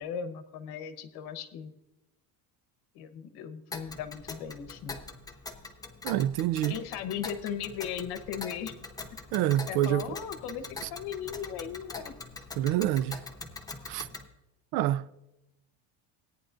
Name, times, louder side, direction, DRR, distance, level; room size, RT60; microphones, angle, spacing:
voice 1, 0.0-1.7 2.9-5.0 6.7-8.7 9.7-12.2, left 8 dB, 70° left, 1.1 m, -37 dB
Tick, 3.7-14.3, left 3 dB, 10° left, 0.7 m, -43 dB
voice 2, 6.0-6.8 9.3-10.1 10.8-10.9 12.6-13.2 13.9-14.1 14.7-15.1, right 13 dB, 70° right, 0.5 m, -27 dB
17.0 x 9.8 x 2.6 m
cardioid pair, 150°, 40 cm